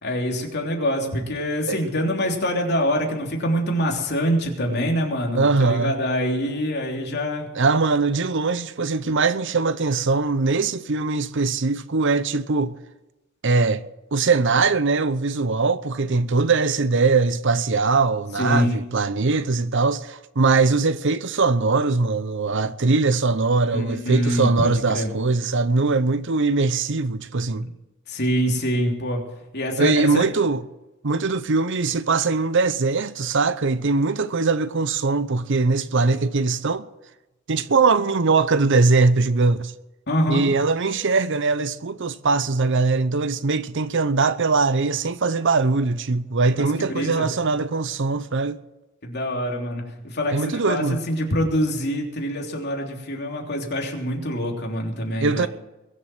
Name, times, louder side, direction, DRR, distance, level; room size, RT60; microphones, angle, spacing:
voice 1, 0.0-7.5 18.4-18.8 23.7-25.1 28.1-29.2 29.5-30.3 40.1-40.4 46.6-47.3 49.0-55.5, equal, 55° left, 3.3 m, -25 dB
voice 2, 5.3-5.9 7.6-12.7 13.4-13.8 14.1-27.7 29.8-30.6 31.0-36.8 37.5-39.7 40.3-48.6 50.3-51.0 55.2-55.5, right 3 dB, 60° right, 0.8 m, -21 dB
22.0 x 7.6 x 7.8 m
head